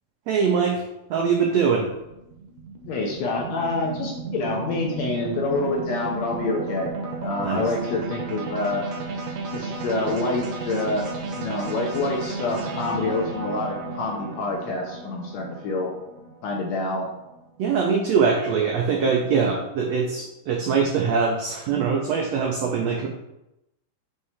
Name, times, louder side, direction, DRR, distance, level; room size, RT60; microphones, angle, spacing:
voice 1, 0.3-0.8 1.1-1.9 7.4-7.7 17.6-23.1, right 5 dB, 85° right, 0 dB, 1.5 m, -22 dB
sound 1, 1.5-17.6, right 3 dB, 70° right, 1.9 m, -33 dB
voice 2, 2.9-6.9 7.2-8.8 9.5-11.0 11.3-15.9 16.4-17.1, left 3 dB, 75° left, 0 dB, 1.6 m, -27 dB
6.0 x 3.2 x 5.6 m, 0.89 s
omnidirectional pair, 4.0 m